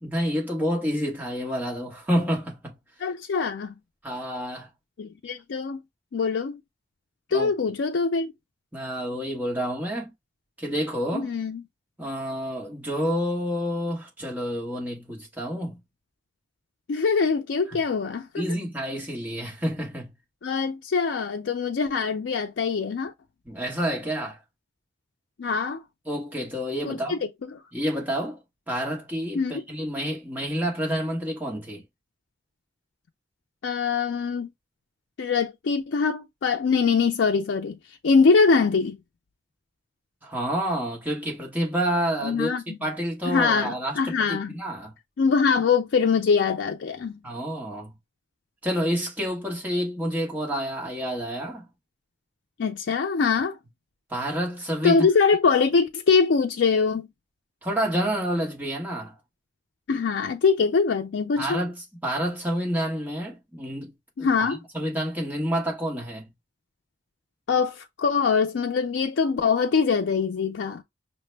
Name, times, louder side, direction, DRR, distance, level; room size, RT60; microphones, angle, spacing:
voice 1, 0.0-2.8 4.0-4.7 7.3-7.5 8.7-10.1 10.6-11.3 12.0-15.8 18.4-20.1 23.4-24.4 26.1-27.2 27.7-28.4 28.7-31.8 40.2-44.9 47.2-47.9 48.6-51.7 54.1-55.1 57.6-59.1 61.4-61.8 62.0-63.9 64.2-64.5 64.7-66.3, equal, 10° right, 1.1 m, -28 dB
voice 2, 3.0-3.7 5.0-5.8 6.1-6.6 7.3-8.3 11.1-11.6 16.9-18.5 20.4-23.1 25.4-25.8 26.8-27.2 27.5-27.6 29.3-29.6 33.6-34.5 35.2-39.0 42.2-42.8 43.3-44.5 45.2-47.2 52.6-53.6 54.8-57.1 59.9-61.6 64.2-64.6 67.5-70.8, left 5 dB, 80° left, 0.4 m, -23 dB
5.6 x 2.1 x 3.2 m
head